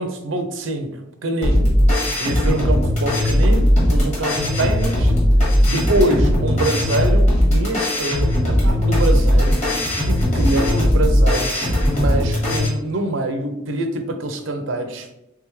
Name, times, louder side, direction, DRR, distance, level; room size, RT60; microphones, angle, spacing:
voice 1, 0.0-1.7 2.2-5.1 5.7-9.7 10.1-15.1, right 1 dB, 75° right, 6 dB, 0.6 m, -25 dB
sound 1, 1.4-12.7, equal, 35° left, 1.4 m, -18 dB
3.5 x 3.4 x 3.1 m, 0.85 s
head